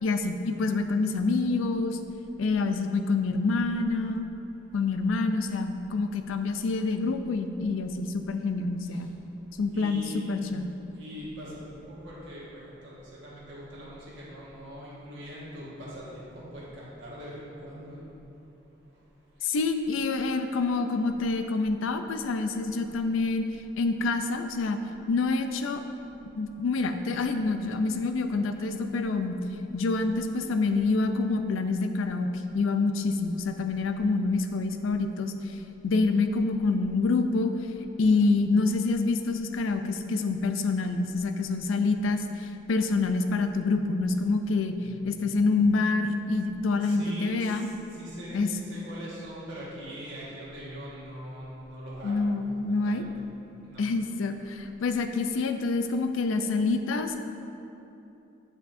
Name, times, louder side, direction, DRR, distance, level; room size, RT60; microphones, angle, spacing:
voice 1, 0.0-2.0 2.4-4.3 4.7-9.1 9.6-10.6 19.4-23.5 23.8-24.8 25.1-25.8 26.4-29.4 29.7-35.3 35.8-37.5 38.0-44.8 45.1-47.7 48.3-48.5 52.0-53.0 53.8-57.2, left 3 dB, 85° left, 7 dB, 0.4 m, -27 dB
voice 2, 9.7-10.2 11.0-18.1 44.7-45.3 46.8-47.6 47.9-52.2 52.6-53.1 53.6-53.8, equal, 75° right, -8 dB, 1.5 m, -42 dB
8.1 x 5.3 x 2.6 m, 2.9 s
head